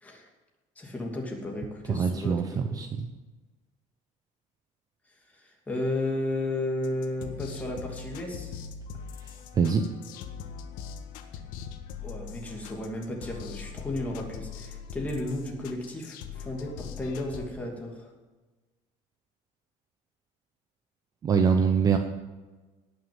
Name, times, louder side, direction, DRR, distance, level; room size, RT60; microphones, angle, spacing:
voice 1, 0.8-2.9 5.3-8.5 12.0-18.1, left 1 dB, 10° left, 0 dB, 2.7 m, -34 dB
voice 2, 1.9-3.1 9.2-9.8 21.2-22.0, right 6 dB, 25° right, 6 dB, 0.8 m, -24 dB
sound 1, 6.8-17.5, left 7 dB, 70° left, 1.6 m, -41 dB
18.5 x 6.6 x 9.0 m, 1.2 s
cardioid pair, 175°, 15 cm